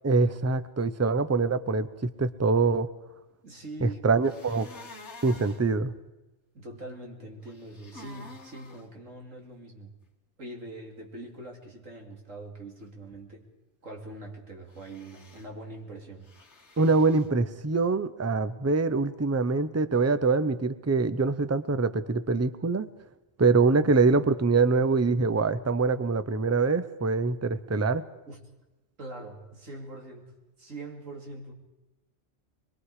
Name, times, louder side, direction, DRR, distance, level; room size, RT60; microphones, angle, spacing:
voice 1, 0.0-2.9 3.8-4.7 5.2-5.9 16.8-22.9 23.4-28.0, right 4 dB, 20° right, 13 dB, 0.4 m, -24 dB
voice 2, 3.4-4.2 6.5-10.0 10.4-13.5 13.8-16.3 23.5-23.6 28.3-28.4 29.0-30.3 30.6-31.5, right 2 dB, 80° right, 1 dB, 3.1 m, -43 dB
sound 1, 4.2-5.6 7.4-8.8 14.7-15.5 16.2-17.3, left 2 dB, 60° left, 2.1 m, -48 dB
24.5 x 22.0 x 4.9 m, 1.1 s
omnidirectional pair, 1.3 m